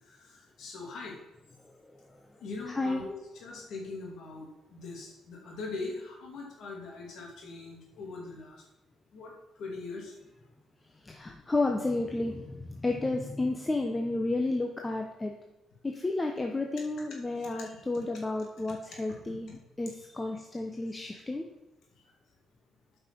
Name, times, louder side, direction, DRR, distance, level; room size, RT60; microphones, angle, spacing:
voice 1, 0.1-1.1 2.4-8.6 9.1-9.3 9.6-10.1 16.8-16.9 17.4-17.5, left 3 dB, 75° left, -1 dB, 2.6 m, -41 dB
voice 2, 2.7-3.0 11.0-15.3 15.8-21.4, left 2 dB, 20° left, 2 dB, 0.9 m, -32 dB
8.4 x 5.6 x 6.2 m, 0.94 s
cardioid pair, 90°, 0 cm